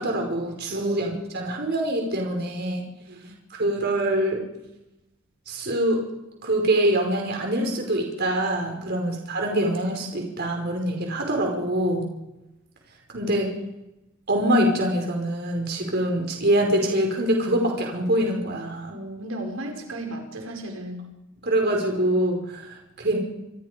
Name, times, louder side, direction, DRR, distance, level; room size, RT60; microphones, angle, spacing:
voice 1, 0.0-2.8 3.5-4.4 5.5-6.0 6.4-12.1 13.1-13.5 14.3-18.9 21.4-23.2, right 1 dB, 55° right, 2 dB, 5.2 m, -24 dB
voice 2, 18.9-21.1, right 1 dB, 90° right, 2 dB, 5.4 m, -35 dB
28.0 x 23.0 x 5.2 m, 0.94 s
head